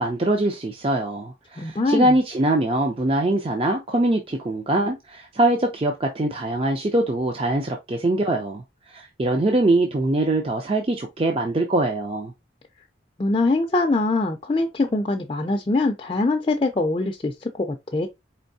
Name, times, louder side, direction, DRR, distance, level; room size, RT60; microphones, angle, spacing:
voice 1, 0.0-12.3, right 1 dB, 30° right, 0.4 m, -23 dB
voice 2, 1.6-2.1 13.2-18.1, left 2 dB, 25° left, 0.4 m, -23 dB
4.4 x 3.0 x 2.6 m
head